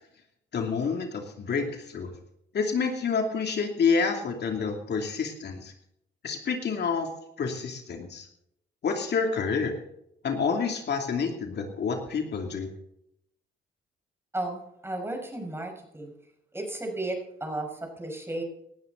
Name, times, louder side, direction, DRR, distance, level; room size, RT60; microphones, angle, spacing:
voice 1, 0.5-2.1 2.5-5.7 6.2-7.1 7.4-8.3 8.8-9.8 10.2-12.7, left 5 dB, 55° left, 3 dB, 2.7 m, -28 dB
voice 2, 14.3-16.1 16.5-18.4, right 2 dB, 10° right, 3 dB, 5.5 m, -34 dB
19.0 x 13.0 x 3.9 m, 0.76 s
cardioid pair, 90°, 20 cm